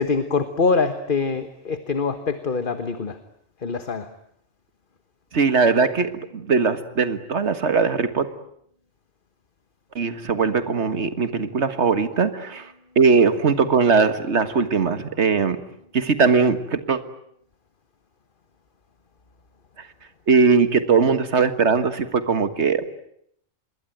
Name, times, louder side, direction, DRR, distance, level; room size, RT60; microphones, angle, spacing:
voice 1, 0.0-3.2 3.6-4.1, left 4 dB, 40° left, 10 dB, 1.5 m, -24 dB
voice 2, 5.3-8.3 10.0-15.6 15.9-17.0 19.8-19.9 20.3-22.9, right 5 dB, 60° right, 11 dB, 1.9 m, -20 dB
26.5 x 21.5 x 9.2 m, 0.71 s
omnidirectional pair, 1.3 m